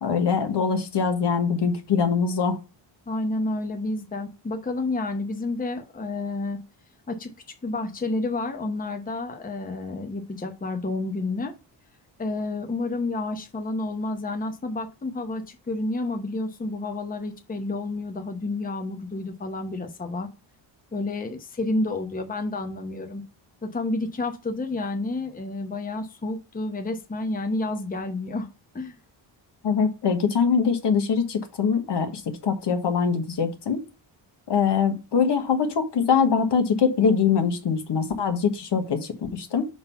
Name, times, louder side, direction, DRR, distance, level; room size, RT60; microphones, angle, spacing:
voice 1, 0.0-2.6 29.6-33.8 34.5-39.7, left 6 dB, 60° left, 6 dB, 1.4 m, -23 dB
voice 2, 3.1-6.6 7.1-7.3 7.6-11.5 12.2-20.3 20.9-23.2 23.6-28.5 28.7-29.0, left 2 dB, 20° left, 5 dB, 0.9 m, -30 dB
5.5 x 3.9 x 5.6 m, 0.30 s
cardioid pair, 115°, 46 cm